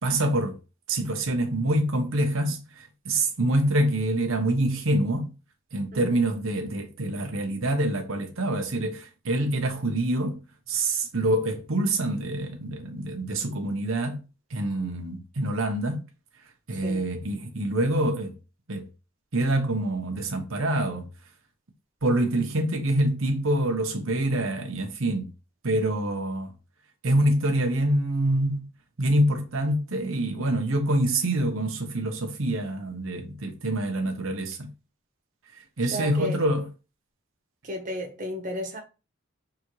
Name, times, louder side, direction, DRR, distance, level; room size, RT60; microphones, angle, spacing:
voice 1, 0.0-0.6 0.9-2.6 3.0-5.3 5.7-10.4 10.7-14.2 14.5-16.0 16.7-18.3 18.7-18.9 19.3-21.0 22.0-25.3 25.6-26.5 27.0-28.6 29.0-34.7 35.8-36.6, right 1 dB, 75° right, 1.0 m, -26 dB
voice 2, 16.7-17.1 35.8-36.4 37.6-38.8, equal, 35° right, 1.0 m, -34 dB
4.8 x 3.5 x 3.1 m
head